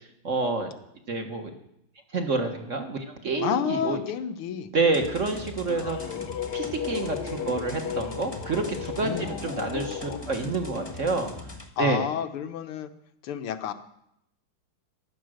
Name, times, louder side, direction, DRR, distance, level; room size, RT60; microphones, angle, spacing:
voice 1, 0.2-0.7 1.1-1.5 2.1-4.0 4.7-6.0 6.5-11.3 11.8-12.1, right 3 dB, 40° right, 5 dB, 1.6 m, -28 dB
voice 2, 3.4-4.7 9.0-9.3 11.8-12.9 13.2-13.7, left 9 dB, 85° left, 10 dB, 1.9 m, -30 dB
sound 1, 4.9-11.7, left 2 dB, 15° left, 1.0 m, -41 dB
sound 2, 5.4-10.2, left 8 dB, 60° left, 1.4 m, -35 dB
15.5 x 11.5 x 6.4 m, 0.77 s
omnidirectional pair, 2.3 m